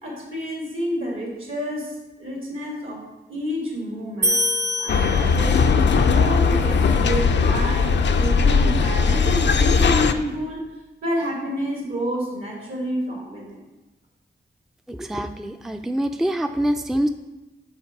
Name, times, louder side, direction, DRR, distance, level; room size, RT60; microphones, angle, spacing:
voice 1, 0.0-4.4 4.8-10.6 11.0-13.6, equal, 75° right, -2 dB, 2.5 m, -29 dB
sound 1, 4.2-5.8, left 1 dB, 60° right, 0.9 m, -25 dB
sound 2, 4.9-10.1, left 5 dB, 65° left, 0.4 m, -19 dB
voice 2, 14.9-17.1, right 1 dB, ahead, 7 dB, 0.4 m, -25 dB
5.7 x 3.9 x 5.8 m, 1.1 s
cardioid pair, 45°, 20 cm